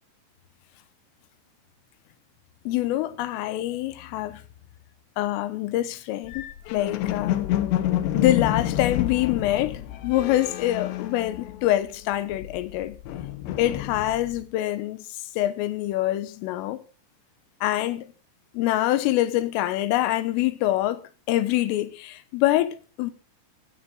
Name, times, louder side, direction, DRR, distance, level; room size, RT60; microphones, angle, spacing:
voice 1, 2.7-4.4 5.2-6.4 6.7-7.4 8.1-13.0 13.6-16.8 17.6-18.1 18.6-23.1, left 14 dB, 90° left, 3.7 m, -25 dB
sound 1, 6.3-11.9 12.2-14.4, left 12 dB, 70° left, 3.0 m, -29 dB
17.0 x 13.0 x 3.9 m
omnidirectional pair, 5.7 m